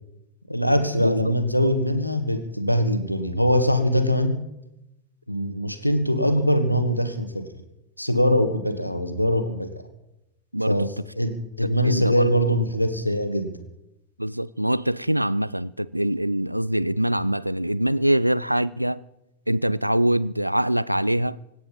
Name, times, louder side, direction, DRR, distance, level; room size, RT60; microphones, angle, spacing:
voice 1, 0.5-4.4 5.3-7.5 8.0-9.8 10.7-13.6, equal, 90° left, 1.6 m, -22 dB
voice 2, 14.2-19.0 19.5-21.4, right 1 dB, 90° right, 0.4 m, -23 dB
25.0 x 9.2 x 5.4 m
figure-of-eight pair, 90°, 0 cm